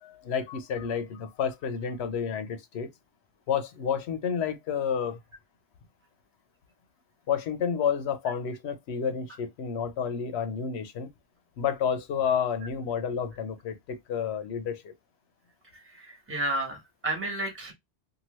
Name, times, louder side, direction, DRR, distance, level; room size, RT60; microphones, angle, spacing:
voice 1, 0.0-2.9 3.5-5.2 7.3-11.1 11.6-14.9, left 7 dB, 75° left, 0.9 m, -30 dB
voice 2, 15.9-17.7, right 1 dB, 10° right, 1.1 m, -32 dB
2.8 x 2.5 x 3.0 m
omnidirectional pair, 1.1 m